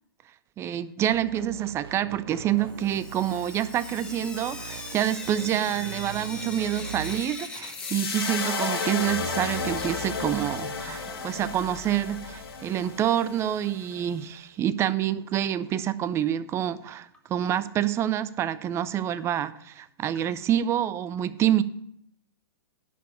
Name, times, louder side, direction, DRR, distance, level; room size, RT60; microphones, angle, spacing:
voice 1, 0.6-21.6, right 11 dB, 20° right, 16 dB, 0.5 m, -27 dB
sound 1, 1.1-7.2, right 8 dB, 70° right, 0.5 m, -41 dB
Sink (filling or washing) / Drip, 2.6-9.4 9.7-11.6 12.8-12.9 13.2-13.3 13.5-13.6 16.5-16.6 17.1-17.2 17.8-17.9 18.5-18.6 19.2-19.3 20.1-20.2, left 3 dB, 5° left, 1.3 m, -41 dB
sound 2, 7.7-14.0, left 4 dB, 80° left, 2.0 m, -33 dB
10.5 x 4.8 x 8.0 m, 0.72 s
hypercardioid pair, 125°, 13 cm